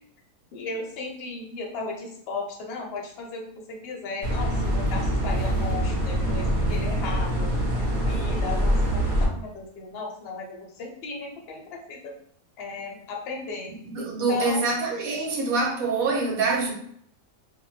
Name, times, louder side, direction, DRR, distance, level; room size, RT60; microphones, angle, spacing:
voice 1, 0.5-7.5 8.1-12.1 12.6-14.6, left 4 dB, 55° left, 0 dB, 0.7 m, -36 dB
sound 1, 4.2-9.2, equal, 40° right, 0.9 m, -24 dB
voice 2, 13.9-16.7, right 3 dB, 65° right, -1 dB, 1.1 m, -25 dB
2.6 x 2.2 x 3.1 m, 0.67 s
omnidirectional pair, 1.6 m